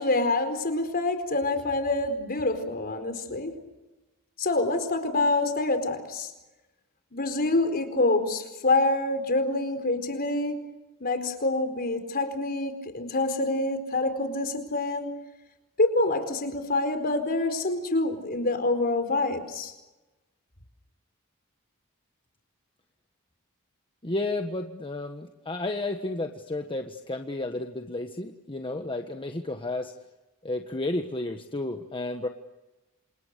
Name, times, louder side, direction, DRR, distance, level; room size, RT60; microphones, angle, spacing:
voice 1, 0.0-3.5 4.4-6.3 7.1-10.6 11.0-15.1 15.8-19.7, left 2 dB, 45° left, 8 dB, 4.5 m, -26 dB
voice 2, 24.0-29.9 30.4-32.3, left 2 dB, 25° left, 5 dB, 1.4 m, -32 dB
28.0 x 28.0 x 6.8 m, 1.1 s
head